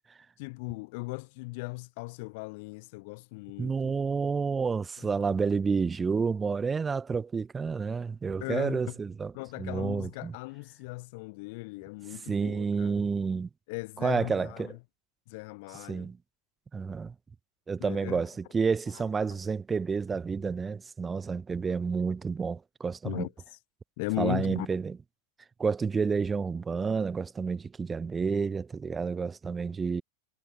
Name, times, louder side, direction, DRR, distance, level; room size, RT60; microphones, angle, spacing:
voice 1, 0.4-3.9 8.4-9.0 9.3-13.0 13.7-14.8 15.3-16.1 17.8-18.2 23.0-23.3 24.0-24.7, left 27 dB, 50° left, 0.5 m, -37 dB
voice 2, 3.6-9.3 9.6-10.3 12.3-13.5 14.0-14.7 15.9-16.2 16.7-17.1 17.7-23.3 24.2-25.0 25.6-30.0, right 5 dB, 15° right, 0.9 m, -30 dB
figure-of-eight pair, 90°, 0 cm